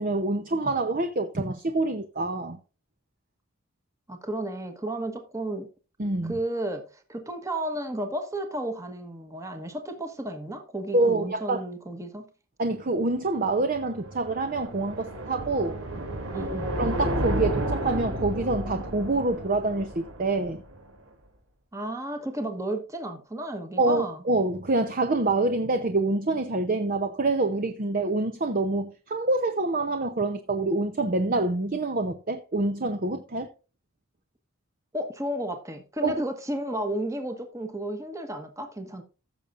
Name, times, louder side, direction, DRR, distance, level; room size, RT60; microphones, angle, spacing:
voice 1, 0.0-2.6 6.0-6.4 10.9-11.6 12.6-15.8 16.8-20.6 23.8-33.5 36.0-36.1, right 2 dB, 40° right, 0.8 m, -26 dB
voice 2, 4.1-5.7 6.2-12.3 16.3-16.7 21.7-24.2 34.9-39.0, right 1 dB, 15° right, 1.2 m, -33 dB
sound 1, 13.4-20.8, right 1 dB, 75° right, 3.0 m, -32 dB
15.5 x 6.9 x 2.5 m
head